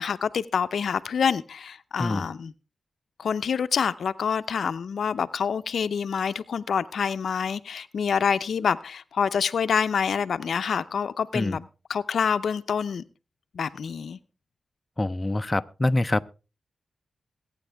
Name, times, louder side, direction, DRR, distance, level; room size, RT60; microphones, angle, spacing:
voice 1, 0.0-2.5 3.2-13.0 13.5-14.2, left 6 dB, 80° left, 0.6 m, -27 dB
voice 2, 15.0-16.3, left 2 dB, 25° left, 0.6 m, -25 dB
22.5 x 9.2 x 3.4 m
cardioid pair, 65°, 0 cm